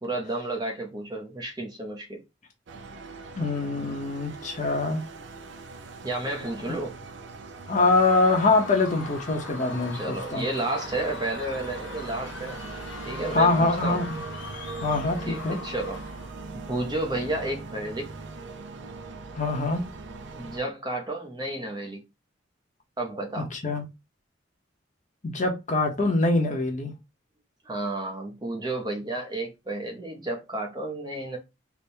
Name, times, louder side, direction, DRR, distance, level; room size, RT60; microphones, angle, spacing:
voice 1, 0.0-2.2 6.0-7.0 9.9-12.6 13.0-14.0 15.3-16.0 16.5-18.1 20.3-22.0 23.0-23.5 27.6-31.4, right 2 dB, 20° right, 0.6 m, -31 dB
sound 1, 2.7-20.6, right 3 dB, 65° right, 0.5 m, -41 dB
voice 2, 3.4-5.0 7.7-10.5 13.3-14.2 14.8-15.6 19.3-19.8 23.4-23.8 25.2-26.9, left 3 dB, 35° left, 0.8 m, -24 dB
Screaming / Cheering / Crowd, 7.8-16.4, left 3 dB, 70° left, 0.8 m, -41 dB
3.4 x 2.1 x 4.3 m
head